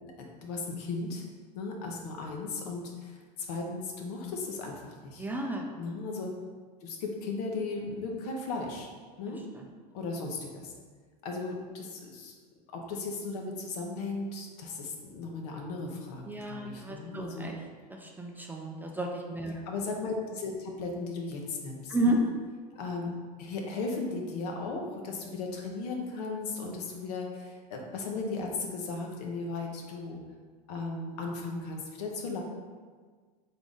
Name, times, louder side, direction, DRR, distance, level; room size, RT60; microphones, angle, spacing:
voice 1, 0.0-1.2 1.5-5.3 5.8-6.3 6.8-8.9 9.2-9.4 9.9-10.7 11.2-12.3 12.7-17.5 19.5-22.3 22.7-30.2 30.7-32.4, left 3 dB, 70° left, 1 dB, 1.0 m, -36 dB
voice 2, 5.2-5.6 9.5-9.7 16.3-17.6 17.9-19.5 21.9-22.2, right 1 dB, 10° right, 0 dB, 0.4 m, -32 dB
3.7 x 3.5 x 3.9 m, 1.5 s
hypercardioid pair, 100°, 21 cm